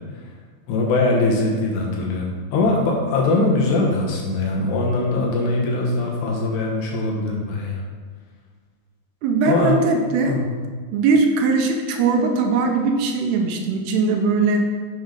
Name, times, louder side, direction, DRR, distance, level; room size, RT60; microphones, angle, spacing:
voice 1, 0.7-7.8 9.5-9.8 10.3-10.5, left 2 dB, 85° left, -1 dB, 3.4 m, -21 dB
voice 2, 9.2-10.4 10.9-14.7, right 4 dB, 80° right, 3 dB, 2.7 m, -20 dB
8.0 x 5.8 x 5.2 m, 1.6 s
omnidirectional pair, 4.7 m